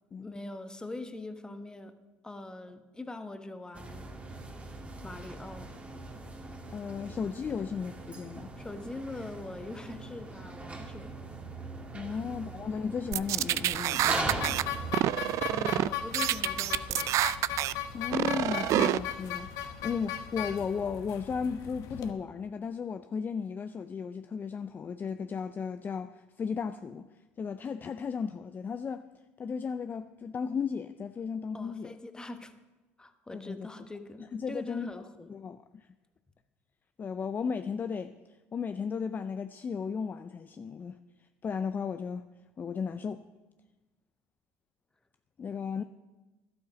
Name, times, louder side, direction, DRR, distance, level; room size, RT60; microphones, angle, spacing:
voice 1, 0.2-1.9 2.2-4.2 5.0-5.7 8.6-11.2 12.1-12.3 15.5-17.1 31.5-32.6 33.0-35.3, left 2 dB, 10° left, 1.1 m, -42 dB
sound 1, 3.7-15.0, right 2 dB, 20° right, 1.8 m, -40 dB
voice 2, 6.7-8.5 11.9-14.5 17.9-27.1 27.4-29.1 29.4-32.0 33.3-33.7 34.3-34.9 35.3-35.9 37.0-38.1 38.5-41.0 41.4-42.2 42.6-43.3 45.4-45.8, left 6 dB, 30° left, 0.4 m, -35 dB
sound 2, 13.1-14.6 14.9-15.9 16.1-17.7 18.1-19.0, right 14 dB, 55° right, 0.4 m, -27 dB
sound 3, 14.2-22.1, left 9 dB, 65° left, 1.0 m, -38 dB
12.0 x 8.6 x 6.3 m
hypercardioid pair, 75°, 6 cm